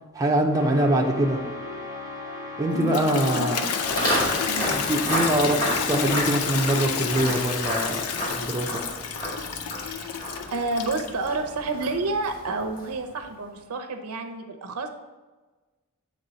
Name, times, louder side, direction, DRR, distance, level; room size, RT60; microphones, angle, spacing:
voice 1, 0.1-1.4 2.6-3.7 4.7-8.8, right 1 dB, 15° right, 0 dB, 0.6 m, -24 dB
sound 1, 0.5-6.6, left 2 dB, 65° left, 1.4 m, -36 dB
Toilet flush, 2.7-11.3, left 7 dB, 85° left, 0.5 m, -30 dB
voice 2, 3.0-3.6 4.5-4.7 9.8-14.9, right 3 dB, 85° right, 6 dB, 0.7 m, -30 dB
Walk footsteps, 3.8-13.1, equal, 20° left, 2.0 m, -31 dB
8.3 x 3.5 x 4.0 m, 1.3 s
head